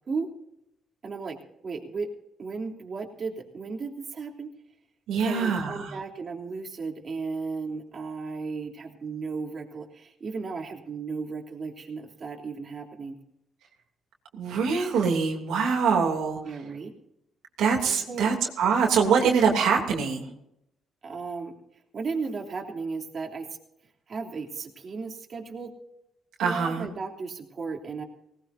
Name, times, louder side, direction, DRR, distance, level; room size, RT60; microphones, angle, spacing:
voice 1, 1.0-1.4 1.6-2.1 2.4-4.5 5.2-13.1 16.4-16.9 17.9-18.3 21.0-21.5 21.9-23.5 24.1-25.7 26.4-28.0, right 4 dB, 45° right, 0 dB, 3.2 m, -35 dB
voice 2, 5.1-6.0 14.3-16.4 17.6-20.3 26.4-26.9, right 6 dB, 85° right, 1 dB, 2.9 m, -24 dB
19.5 x 19.0 x 2.7 m, 0.79 s
cardioid pair, 90°, 0 cm